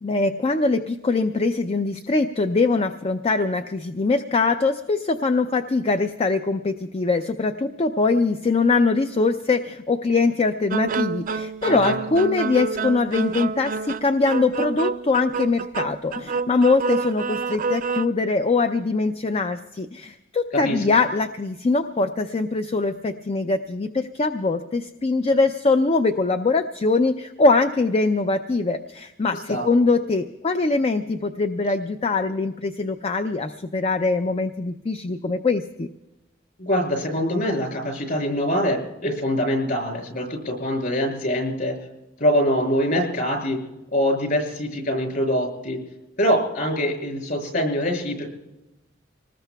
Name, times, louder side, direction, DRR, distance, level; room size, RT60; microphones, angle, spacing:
voice 1, 0.0-35.9, left 3 dB, 30° left, 8 dB, 0.4 m, -22 dB
sound 1, 10.7-18.1, right 5 dB, 45° right, 0.4 m, -28 dB
voice 2, 11.6-11.9 20.5-20.8 29.3-29.7 36.6-41.8 42.2-43.6 43.9-45.8 46.2-48.3, equal, 50° left, 3 dB, 6.4 m, -24 dB
26.0 x 19.5 x 2.3 m, 0.98 s
head